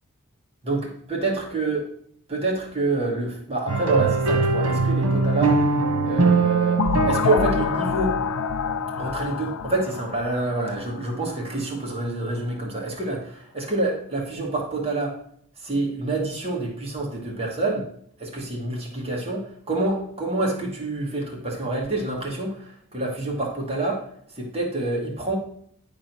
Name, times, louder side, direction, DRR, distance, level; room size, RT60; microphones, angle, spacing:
voice 1, 0.6-1.9 2.3-5.6 6.0-8.2 9.0-15.2 15.6-17.9 18.2-24.0 24.3-25.4, right 2 dB, 25° right, -1 dB, 1.6 m, -27 dB
sound 1, 3.7-9.3, right 3 dB, 85° right, 1.3 m, -22 dB
sound 2, 6.8-11.5, left 8 dB, 65° left, 0.3 m, -28 dB
10.5 x 3.7 x 6.0 m, 0.64 s
head